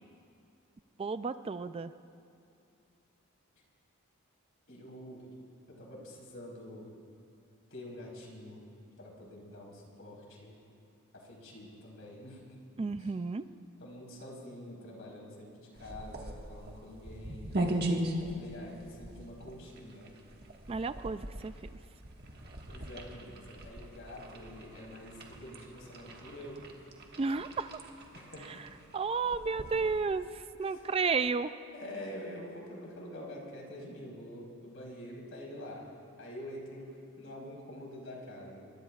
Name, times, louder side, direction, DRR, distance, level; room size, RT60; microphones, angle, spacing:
voice 1, 1.0-1.9 12.8-13.4 20.7-21.5 27.2-27.8 28.4-31.5, right 4 dB, 25° right, 12 dB, 0.3 m, -32 dB
voice 2, 4.7-5.3 5.7-6.9 7.7-8.6 9.0-10.5 11.1-12.4 13.0-13.1 13.8-17.5 18.2-20.1 22.7-26.6 28.1-28.6 30.7-30.8 31.7-35.9 36.2-36.9 37.2-38.6, left 1 dB, 70° left, -3 dB, 4.5 m, -46 dB
sound 1, 15.8-30.3, right 1 dB, 45° right, 1.6 m, -40 dB
26.0 x 23.0 x 2.4 m, 2.6 s
head